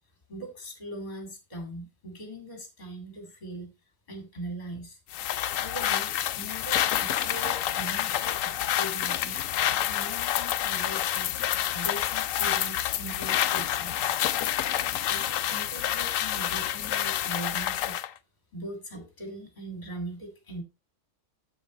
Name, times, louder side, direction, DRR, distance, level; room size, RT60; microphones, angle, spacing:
voice 1, 0.3-3.7 4.1-5.0 5.6-9.4 9.9-11.3 11.7-14.2 14.9-18.0 18.5-20.6, right 1 dB, 35° left, 3 dB, 2.3 m, -40 dB
sound 1, 5.1-18.1, left 11 dB, 80° left, 1.0 m, -28 dB
7.8 x 7.2 x 4.0 m, 0.27 s
omnidirectional pair, 1.3 m